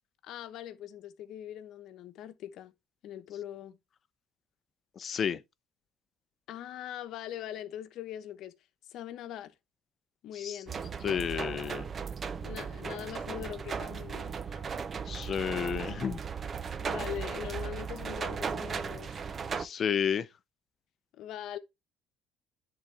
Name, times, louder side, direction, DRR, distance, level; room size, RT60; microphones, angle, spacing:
voice 1, 0.2-2.7 3.0-3.8 6.5-8.5 8.9-9.5 10.2-10.8 12.4-14.4 16.8-19.2 21.1-21.6, left 11 dB, 65° left, 1.0 m, -41 dB
voice 2, 5.0-5.4 10.4-10.6 11.0-11.9 15.1-16.2 19.6-20.3, left 7 dB, 40° left, 0.6 m, -31 dB
sound 1, 10.7-19.7, right 6 dB, 35° right, 0.6 m, -36 dB
10.5 x 3.9 x 3.4 m
cardioid pair, 110°, 0 cm